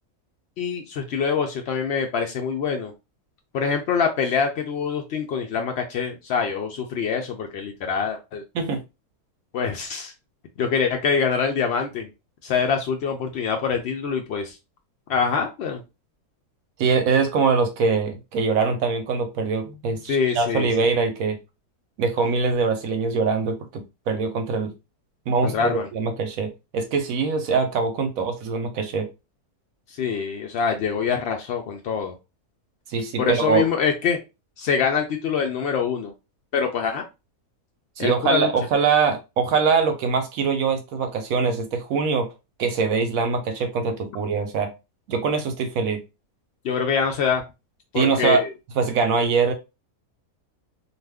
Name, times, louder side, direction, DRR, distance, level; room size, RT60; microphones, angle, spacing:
voice 1, 0.6-2.9 3.5-8.4 9.5-10.1 10.6-12.1 12.4-14.5 15.1-15.8 20.1-20.7 25.4-25.9 30.0-32.2 33.2-34.2 34.6-36.1 36.5-37.0 38.0-38.5 46.6-47.4 47.9-48.5, left 6 dB, 85° left, 4 dB, 0.5 m, -24 dB
voice 2, 16.8-21.4 22.0-24.7 25.3-29.1 32.9-33.7 38.0-42.3 42.6-44.7 45.1-46.0 47.9-48.4 48.8-49.5, right 5 dB, 70° right, 6 dB, 0.9 m, -23 dB
2.5 x 2.4 x 3.4 m, 0.26 s
omnidirectional pair, 1.7 m